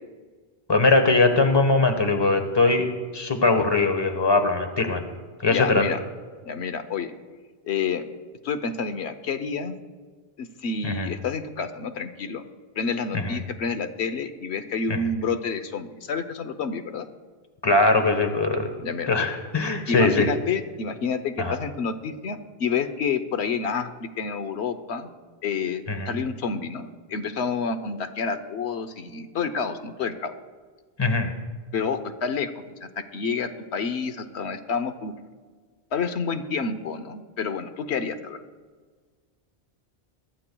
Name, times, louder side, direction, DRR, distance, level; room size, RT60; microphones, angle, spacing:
voice 1, 0.7-5.0 5.4-5.8 10.8-11.1 13.1-13.4 14.9-15.0 17.6-18.7 19.1-20.3 21.4-21.5 25.9-26.1 31.0-31.3, left 3 dB, 25° left, 6 dB, 1.2 m, -21 dB
voice 2, 5.5-6.0 6.4-7.1 7.7-8.0 8.4-9.7 10.4-12.4 12.8-17.1 18.8-19.1 19.9-25.1 25.4-30.3 31.7-32.5 32.8-35.1 35.9-38.4, left 5 dB, 85° left, 9 dB, 1.1 m, -29 dB
23.0 x 13.5 x 2.3 m, 1.5 s
omnidirectional pair, 1.1 m